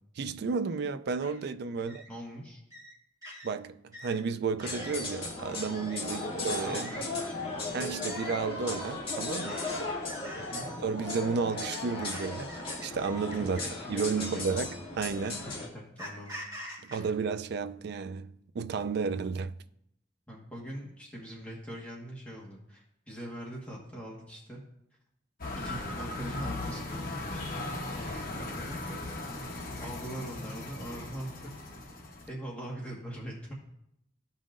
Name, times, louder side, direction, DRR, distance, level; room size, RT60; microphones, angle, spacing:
voice 1, 0.2-2.0 3.4-6.9 7.7-9.6 10.8-12.5 12.8-13.6 13.9-15.5 16.8-19.5, right 5 dB, 60° right, 0.4 m, -32 dB
sound 1, 1.2-1.4 1.9-2.1 2.7-2.9 3.2-3.5 3.9-4.2 4.6-5.0 5.5-6.0 6.4-7.0 7.8-8.4 9.3-9.8 10.1-10.6 11.7-13.8 14.7-14.8 16.0-17.0, equal, 20° right, 2.4 m, -45 dB
voice 2, 1.8-2.6 6.0-7.7 10.4-10.7 13.6-14.6 15.4-16.4 16.9-17.1 20.3-24.6 25.5-27.6 28.0-28.8 29.8-31.5 32.3-33.5, equal, 10° left, 1.4 m, -43 dB
sound 2, 4.6-15.7, left 2 dB, 30° left, 1.9 m, -36 dB
sound 3, 25.4-32.3, left 2 dB, 50° left, 1.2 m, -38 dB
14.5 x 5.5 x 2.5 m
head